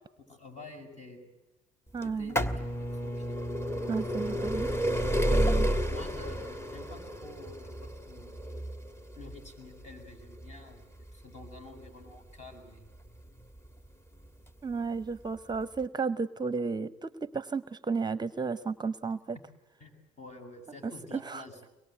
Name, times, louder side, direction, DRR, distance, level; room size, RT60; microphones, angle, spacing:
voice 1, 0.2-1.3 2.0-3.4 5.9-8.5 9.1-12.9 19.8-19.9 20.2-21.6, left 3 dB, 40° left, 5 dB, 7.1 m, -49 dB
voice 2, 1.9-2.3 3.9-4.7 5.3-5.7 14.6-19.4 20.8-21.4, right 4 dB, 25° right, 16 dB, 0.8 m, -33 dB
sound 1, 2.0-13.7 14.5-14.6 15.5-15.6 15.8-15.9, equal, 15° left, 1.7 m, -31 dB
23.5 x 21.0 x 9.3 m, 1.0 s
supercardioid pair, 75°, 18 cm